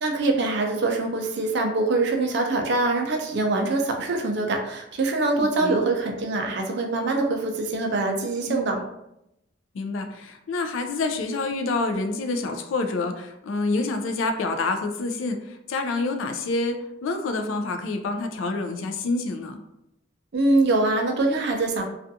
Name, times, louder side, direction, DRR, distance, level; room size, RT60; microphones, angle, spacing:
voice 1, 0.0-8.8 20.3-21.8, right 2 dB, 55° right, 2 dB, 0.4 m, -24 dB
voice 2, 5.1-5.8 8.5-8.9 9.7-19.6, left 3 dB, 75° left, 6 dB, 0.3 m, -28 dB
2.4 x 2.3 x 2.6 m, 0.84 s
head